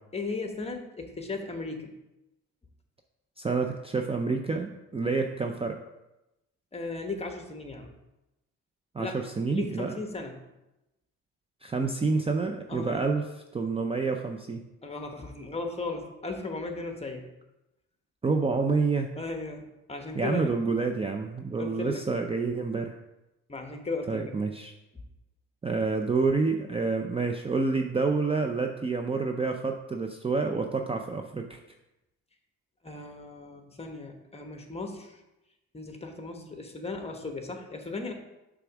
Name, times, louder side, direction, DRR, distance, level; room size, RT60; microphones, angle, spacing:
voice 1, 0.1-1.9 6.7-7.9 9.0-9.2 9.5-10.4 12.7-13.1 14.8-17.3 19.2-20.5 21.6-22.0 23.5-24.3 32.8-35.2 35.7-38.1, left 3 dB, 20° left, 4 dB, 1.1 m, -36 dB
voice 2, 3.4-5.8 8.9-9.9 11.6-13.2 13.5-14.6 18.2-19.1 20.1-23.0 24.1-24.7 25.6-31.6, right 4 dB, 20° right, 4 dB, 0.4 m, -28 dB
6.7 x 3.6 x 6.0 m, 0.95 s
cardioid pair, 90°, 30 cm